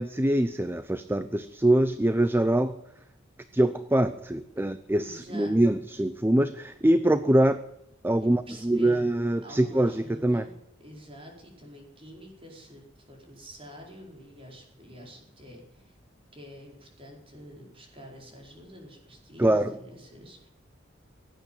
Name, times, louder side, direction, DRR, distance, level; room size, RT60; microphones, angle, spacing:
voice 1, 0.0-2.8 3.5-7.6 8.0-10.4 19.4-19.7, right 1 dB, 10° right, 11 dB, 0.6 m, -24 dB
voice 2, 5.0-5.8 8.2-9.0 9.4-10.5 10.8-15.9 16.3-20.5, equal, 30° right, 0 dB, 4.9 m, -47 dB
17.5 x 9.1 x 9.0 m, 0.78 s
head